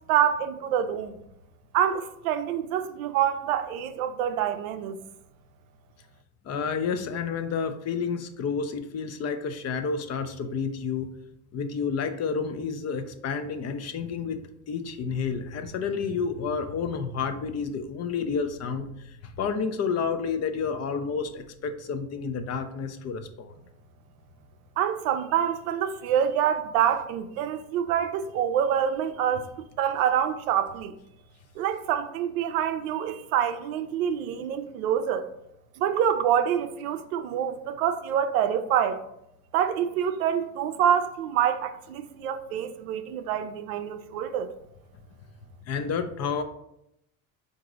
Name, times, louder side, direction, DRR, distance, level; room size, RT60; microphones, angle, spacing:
voice 1, 0.1-1.2 1.7-5.0 24.8-29.5 29.8-30.9 31.6-35.3 35.8-39.0 39.5-44.5, right 9 dB, 80° right, 0.5 m, -26 dB
voice 2, 6.4-11.1 11.5-23.5 45.6-46.4, left 5 dB, 40° left, 0.5 m, -30 dB
3.8 x 2.6 x 4.7 m
hypercardioid pair, 80°, 42 cm